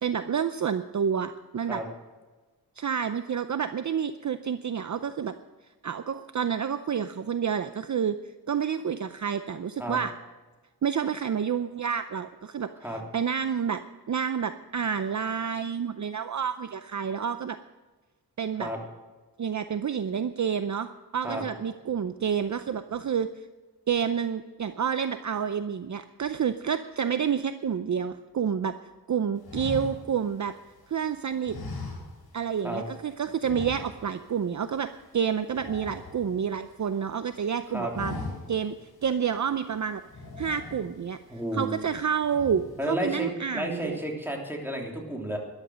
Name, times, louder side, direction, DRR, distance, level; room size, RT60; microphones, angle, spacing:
voice 1, 0.0-1.8 2.8-5.3 5.8-8.2 8.5-10.1 10.8-13.8 14.1-17.6 18.4-18.7 19.4-23.4 23.9-28.8 29.1-30.5 30.9-31.6 32.3-38.1 38.5-40.0 40.4-41.2 41.5-44.0, right 7 dB, 50° right, 10 dB, 0.6 m, -29 dB
sound 1, 29.4-30.9 31.4-32.6 32.8-33.0 33.4-34.3 34.6-34.8 35.1-36.8 37.2-37.5 37.8-38.7 39.2-39.3 40.0-41.2 41.6-42.0 42.2-42.8, left 2 dB, 75° left, 5.6 m, -39 dB
voice 2, 41.3-41.7 42.8-45.4, right 1 dB, 5° right, 0 dB, 3.3 m, -32 dB
13.5 x 11.5 x 6.4 m, 1.2 s
wide cardioid pair, 110°, 38 cm